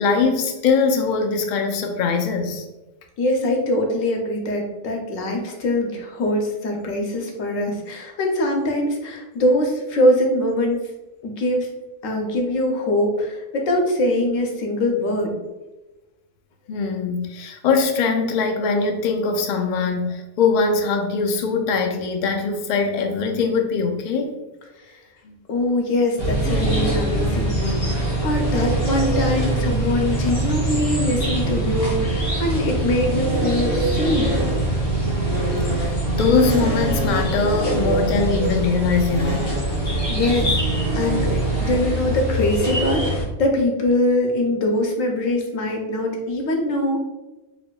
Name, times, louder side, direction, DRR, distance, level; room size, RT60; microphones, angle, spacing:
voice 1, 0.0-2.7 16.7-24.3 25.3-25.4 36.1-39.5, left 4 dB, 70° left, 4 dB, 0.4 m, -21 dB
voice 2, 3.2-10.9 11.2-11.7 12.0-15.3 24.8-25.0 25.5-34.4 40.1-40.5 40.9-47.0, left 1 dB, 90° left, 2 dB, 1.1 m, -23 dB
sound 1, 26.2-43.2, right 1 dB, 35° left, 1.0 m, -23 dB
4.1 x 2.6 x 2.3 m, 1.1 s
omnidirectional pair, 1.3 m